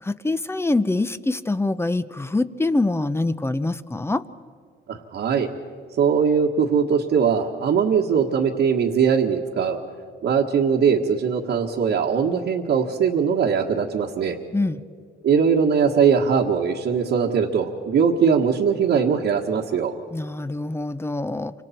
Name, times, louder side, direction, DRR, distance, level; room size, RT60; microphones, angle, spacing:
voice 1, 0.0-4.2 14.5-14.8 20.1-21.5, left 2 dB, 10° left, 13 dB, 0.9 m, -24 dB
voice 2, 4.9-5.5 6.0-9.8 10.2-14.4 15.2-19.9, right 6 dB, 65° right, -1 dB, 1.8 m, -21 dB
29.5 x 26.0 x 4.5 m, 2.1 s
cardioid pair, 90°, 20 cm